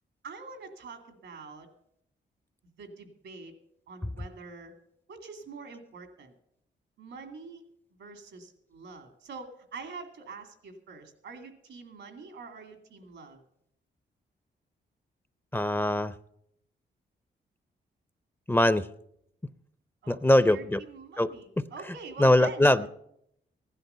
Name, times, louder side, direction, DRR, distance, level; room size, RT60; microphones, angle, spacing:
voice 1, 0.2-1.7 2.8-3.5 3.9-4.7 5.1-6.3 7.0-7.6 8.0-13.4 20.0-22.7, right 4 dB, 85° right, 6 dB, 2.4 m, -45 dB
voice 2, 15.5-16.1 18.5-18.9 20.1-20.8 21.2-21.3 21.6-21.7 22.2-22.9, left 1 dB, 10° left, 15 dB, 0.5 m, -22 dB
15.5 x 11.0 x 5.7 m, 0.75 s
cardioid pair, 70°, 19 cm